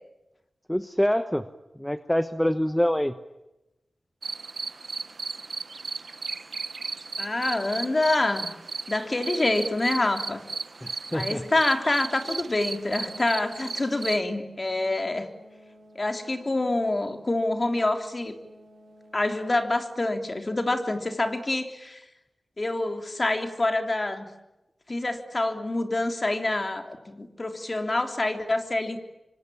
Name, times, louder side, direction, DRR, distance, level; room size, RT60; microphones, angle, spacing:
voice 1, 0.7-1.4 1.8-3.1 10.8-11.4, equal, 5° left, 11 dB, 1.0 m, -25 dB
sound 1, 4.2-14.2, right 4 dB, 60° right, 0.9 m, -35 dB
voice 2, 7.2-8.6 8.9-10.4 11.1-15.3 15.9-18.4 19.1-22.0 22.6-24.3 24.9-29.0, left 2 dB, 35° left, 6 dB, 3.4 m, -26 dB
sound 2, 12.5-19.2, equal, 85° right, 4.8 m, -53 dB
26.5 x 25.0 x 8.8 m, 0.96 s
wide cardioid pair, 70°, 0 cm